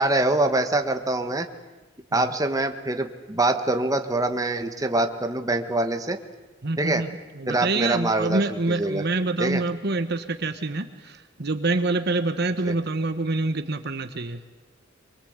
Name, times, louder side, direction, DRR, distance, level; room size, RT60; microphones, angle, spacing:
voice 1, 0.0-1.5 2.1-6.2 6.8-7.0 7.5-9.0 9.4-9.6 12.6-12.8, right 2 dB, 20° right, 6 dB, 1.6 m, -24 dB
voice 2, 6.6-14.4, right 2 dB, 55° right, 9 dB, 1.2 m, -26 dB
24.5 x 23.0 x 8.2 m, 1.2 s
head